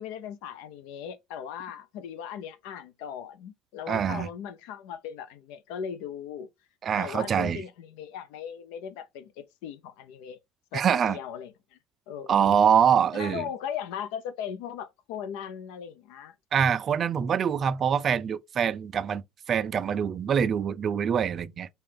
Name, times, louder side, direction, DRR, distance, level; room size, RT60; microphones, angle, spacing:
voice 1, 0.0-6.5 7.0-10.4 10.7-11.8 12.1-12.6 13.1-16.3, left 8 dB, 85° left, 0.7 m, -38 dB
voice 2, 3.9-4.3 6.8-7.6 10.7-11.2 12.3-13.5 16.5-19.2 19.5-21.7, right 7 dB, 30° right, 0.3 m, -24 dB
5.5 x 2.3 x 3.4 m
cardioid pair, 155°, 0 cm